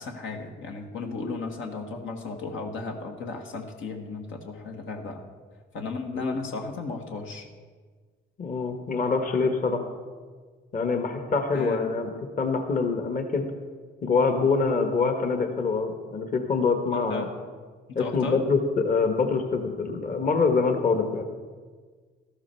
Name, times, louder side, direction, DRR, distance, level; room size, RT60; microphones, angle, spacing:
voice 1, 0.0-5.2 5.7-7.5 11.5-12.0 16.9-17.3 17.9-18.4, left 3 dB, 80° left, 2 dB, 1.6 m, -35 dB
voice 2, 8.4-9.8 10.7-12.1 12.4-13.5 14.0-17.3 17.9-21.2, left 4 dB, 45° left, 5 dB, 1.4 m, -25 dB
13.0 x 12.5 x 4.5 m, 1.5 s
cardioid pair, 90°, 20 cm